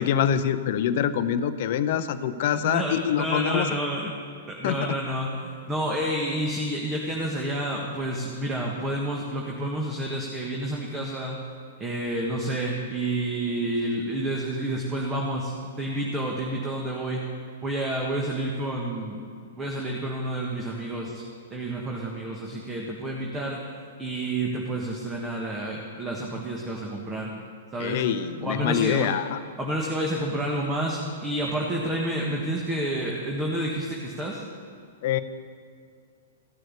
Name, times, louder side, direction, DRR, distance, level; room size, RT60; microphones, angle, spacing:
voice 1, 0.0-3.7 4.6-4.9 27.8-29.4 35.0-35.2, left 9 dB, 55° left, 12 dB, 0.7 m, -25 dB
voice 2, 2.5-4.1 4.4-11.3 11.8-17.2 17.6-19.2 19.6-21.2 21.5-23.6 24.0-27.3 27.7-28.0 28.4-29.1 29.6-34.4, right 1 dB, 15° right, -2 dB, 1.5 m, -29 dB
14.5 x 6.4 x 8.1 m, 2.3 s
hypercardioid pair, 125°, 0 cm